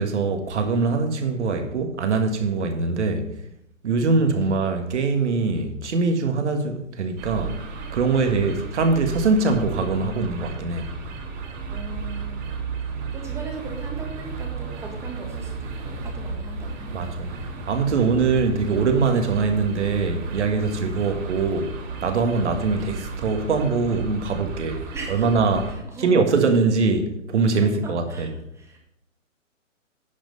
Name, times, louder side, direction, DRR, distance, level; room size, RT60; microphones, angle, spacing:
voice 1, 0.0-3.2 3.8-7.6 7.9-10.9 16.9-17.3 17.7-21.7 22.0-24.8 25.1-25.7 26.0-28.3, right 4 dB, 60° right, 1.7 m, -22 dB
voice 2, 4.3-4.8 11.7-12.4 13.1-17.1 24.9-25.3 25.7-26.1 27.8-28.8, right 2 dB, 5° right, 1.5 m, -39 dB
sound 1, 7.2-25.8, right 4 dB, 25° right, 1.7 m, -33 dB
10.5 x 5.1 x 5.5 m
figure-of-eight pair, 130°, 39 cm